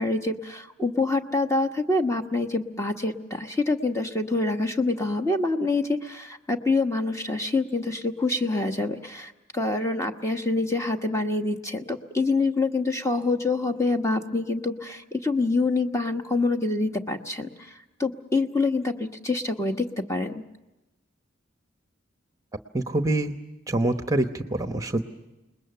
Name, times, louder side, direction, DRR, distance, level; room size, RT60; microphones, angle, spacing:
voice 1, 0.0-20.4, left 3 dB, 15° left, 5 dB, 1.1 m, -26 dB
voice 2, 22.7-23.3 23.7-25.0, right 2 dB, 15° right, 7 dB, 0.9 m, -25 dB
28.0 x 21.0 x 6.9 m, 0.99 s
head